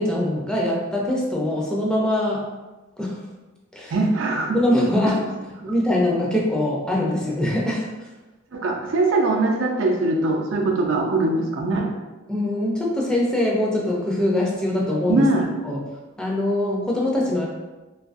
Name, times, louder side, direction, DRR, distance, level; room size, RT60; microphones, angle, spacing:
voice 1, 0.0-2.5 3.0-3.2 3.7-4.0 4.5-5.3 5.7-7.9 12.3-15.3 15.6-17.5, left 1 dB, 5° left, -3 dB, 0.4 m, -23 dB
voice 2, 3.9-4.6 5.6-5.7 8.5-11.9 15.1-15.5, right 2 dB, 85° right, 1 dB, 0.5 m, -21 dB
2.6 x 2.3 x 2.4 m, 1.1 s
head